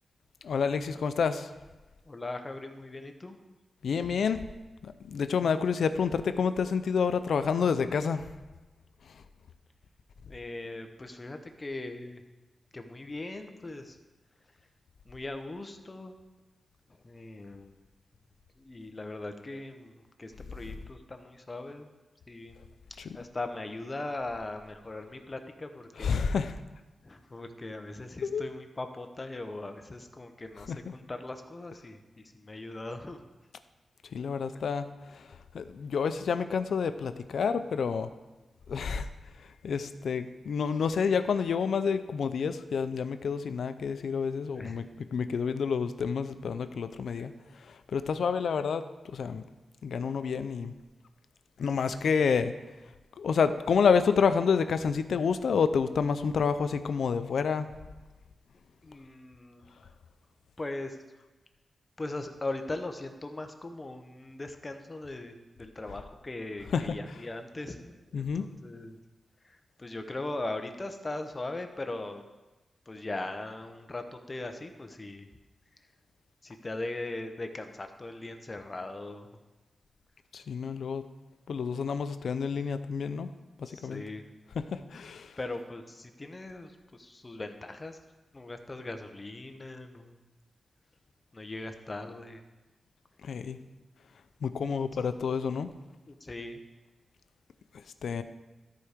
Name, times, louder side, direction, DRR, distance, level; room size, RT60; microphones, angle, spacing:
voice 1, 0.4-1.5 3.8-4.4 4.8-8.3 9.1-9.2 23.0-23.1 26.0-26.6 28.2-28.4 30.7-30.9 34.1-38.1 38.7-39.1 39.4-49.4 49.8-50.7 51.6-52.5 53.2-57.7 66.7-67.0 68.1-68.5 80.3-81.1 81.5-83.3 83.6-84.1 84.5-85.4 93.2-93.6 94.4-95.7 98.0-98.2, left 6 dB, 85° left, 11 dB, 0.5 m, -29 dB
voice 2, 2.0-3.4 10.3-12.2 12.7-14.0 15.1-16.2 17.0-17.8 18.6-21.9 22.3-22.6 23.1-26.1 27.0-33.2 44.5-44.8 58.8-59.6 60.6-61.0 62.0-69.0 69.4-72.3 72.9-75.3 76.4-79.3 83.7-84.3 85.4-88.0 88.3-90.2 91.3-92.4 96.1-96.6, left 2 dB, 30° left, 6 dB, 0.9 m, -39 dB
13.0 x 4.8 x 5.0 m, 1.2 s
wide cardioid pair, 95°, 0 cm